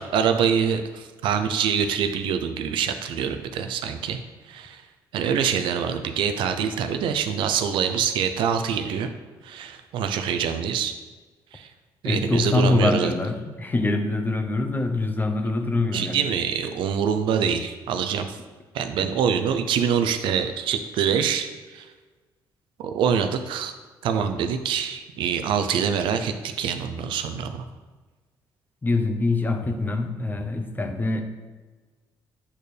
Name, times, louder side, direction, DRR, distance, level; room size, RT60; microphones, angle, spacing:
voice 1, 0.0-4.2 4.5-4.8 5.1-9.1 9.4-11.0 11.5-11.7 12.0-13.1 15.9-18.4 18.7-21.9 22.8-23.7 24.0-27.6, right 7 dB, 80° right, 8 dB, 0.5 m, -25 dB
voice 2, 12.0-16.2 19.0-19.1 28.8-31.2, left 2 dB, 20° left, 6 dB, 0.7 m, -24 dB
8.5 x 4.4 x 3.3 m, 1.3 s
cardioid pair, 90°, 8 cm